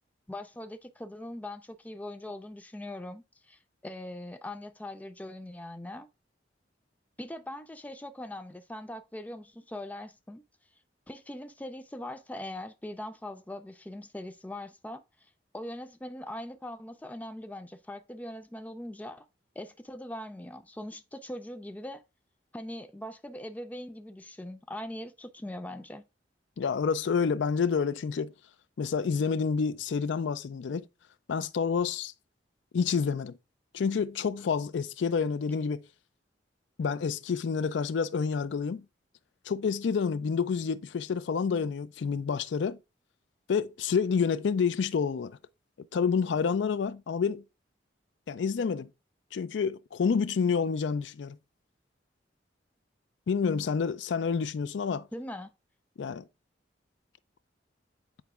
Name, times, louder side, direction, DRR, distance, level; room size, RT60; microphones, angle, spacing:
voice 1, 0.3-6.1 7.2-10.4 11.1-15.0 15.5-19.3 19.6-22.0 22.5-26.0 55.1-55.5, left 1 dB, 10° left, 0.4 m, -41 dB
voice 2, 26.6-28.3 28.8-30.9 31.3-32.1 32.7-33.4 33.7-35.8 36.8-38.8 39.5-42.8 43.5-45.4 45.9-47.4 48.3-48.9 49.3-51.4 53.3-55.1 56.0-56.3, left 6 dB, 75° left, 0.4 m, -28 dB
8.6 x 4.5 x 2.4 m
head